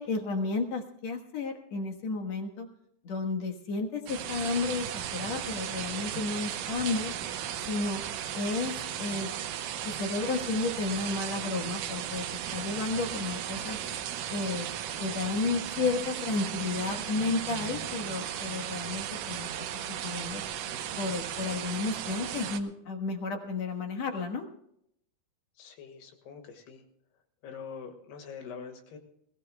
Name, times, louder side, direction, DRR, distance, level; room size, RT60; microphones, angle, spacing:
voice 1, 0.0-2.7 3.0-4.9 5.1-7.1 7.6-8.0 8.3-9.3 9.8-12.2 12.5-13.8 14.3-14.7 15.0-19.7 20.0-20.4 21.0-24.5, left 3 dB, 60° left, 2 dB, 1.9 m, -32 dB
sound 1, 4.1-22.6, right 10 dB, 70° right, 2.1 m, -36 dB
voice 2, 25.6-26.8 27.4-29.0, left 6 dB, 80° left, 5 dB, 3.6 m, -44 dB
22.0 x 16.5 x 2.3 m, 0.74 s
omnidirectional pair, 4.6 m